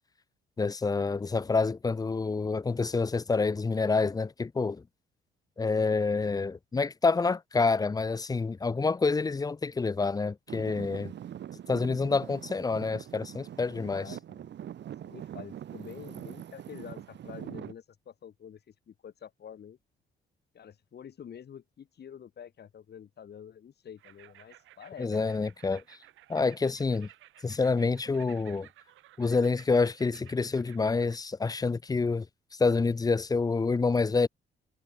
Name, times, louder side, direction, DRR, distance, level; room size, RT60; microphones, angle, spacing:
voice 1, 0.6-4.8 5.6-11.1 11.7-14.0 25.0-26.0 26.3-27.1 27.4-28.7 29.2-32.3 32.5-34.3, left 4 dB, 20° left, 0.5 m, -27 dB
Traffic noise roadway noise / Engine, 10.5-17.7, right 10 dB, 65° right, 1.8 m, -43 dB
voice 2, 13.7-14.5 15.0-19.8 20.5-25.2, left 8 dB, 55° left, 3.5 m, -47 dB
sound 1, 24.0-31.2, right 14 dB, 85° right, 2.8 m, -56 dB
cardioid pair, 90°, 20 cm